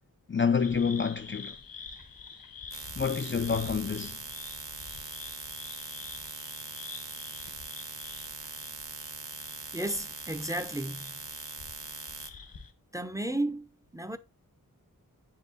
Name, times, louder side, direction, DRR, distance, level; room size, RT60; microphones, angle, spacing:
voice 1, 0.3-1.6 2.9-4.2, left 6 dB, 35° left, 0.5 m, -28 dB
sound 1, 0.6-12.7, left 5 dB, 80° left, 1.6 m, -46 dB
sound 2, 2.7-12.3, right 3 dB, 40° right, 1.3 m, -42 dB
voice 2, 9.7-11.3 12.9-14.2, right 1 dB, 10° right, 0.7 m, -34 dB
8.4 x 5.7 x 4.0 m
wide cardioid pair, 75°, 34 cm